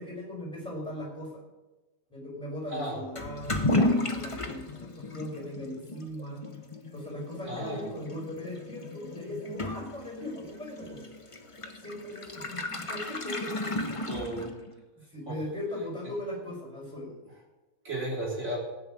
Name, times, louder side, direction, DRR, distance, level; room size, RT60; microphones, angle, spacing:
voice 1, 0.0-1.4 2.1-6.4 6.9-11.1 11.8-13.7 15.1-17.1, left 1 dB, 5° left, -2 dB, 5.2 m, -39 dB
Toilet flush / Liquid, 3.1-14.8, left 2 dB, 25° left, 1.0 m, -33 dB
voice 2, 7.4-7.8 14.1-14.5 15.3-15.4 17.8-18.6, right 1 dB, 50° right, -5 dB, 4.6 m, -34 dB
16.5 x 6.1 x 8.8 m, 1.1 s
omnidirectional pair, 1.6 m